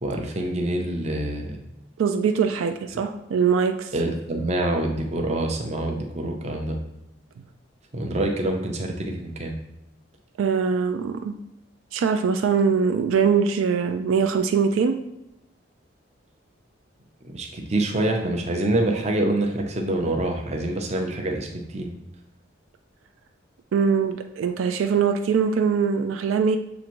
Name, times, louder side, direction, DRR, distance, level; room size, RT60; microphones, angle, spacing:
voice 1, 0.0-1.6 3.9-6.8 7.9-9.5 17.3-21.9, right 1 dB, 35° right, 2 dB, 0.6 m, -26 dB
voice 2, 2.0-3.9 10.4-11.4 11.9-15.0 23.7-26.6, right 6 dB, 80° right, 7 dB, 0.3 m, -22 dB
6.9 x 2.5 x 3.0 m, 0.85 s
head